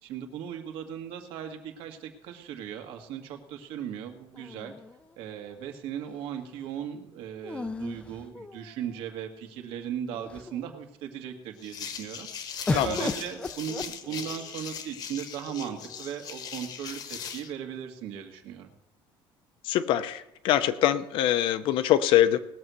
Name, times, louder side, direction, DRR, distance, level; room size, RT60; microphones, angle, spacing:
voice 1, 0.0-4.7 5.2-18.7, right 9 dB, 70° right, 5 dB, 1.9 m, -37 dB
sound 1, 4.3-5.5 7.4-9.0 9.7-9.8 10.1-10.7 12.7-14.5 15.5-16.2, left 3 dB, 10° left, 0.5 m, -36 dB
sound 2, 11.6-17.5, left 7 dB, 40° left, 1.2 m, -39 dB
voice 2, 19.6-22.4, left 12 dB, 60° left, 13 dB, 0.7 m, -23 dB
19.0 x 6.3 x 6.9 m, 0.91 s
cardioid pair, 175°, 10 cm